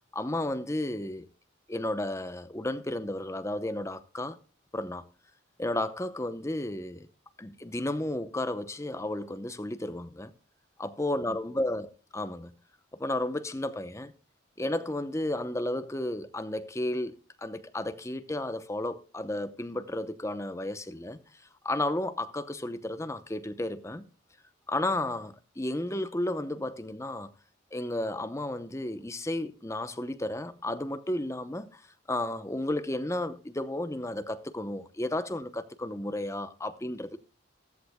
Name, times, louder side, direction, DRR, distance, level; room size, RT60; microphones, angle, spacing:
voice 1, 0.1-1.3 1.7-4.4 4.7-5.0 5.6-7.1 7.4-10.3 10.8-12.5 13.0-14.1 14.6-21.2 21.6-24.1 24.7-27.3 27.7-31.8 32.1-37.2, left 1 dB, 15° left, 0.7 m, -33 dB
14.5 x 14.5 x 2.2 m
head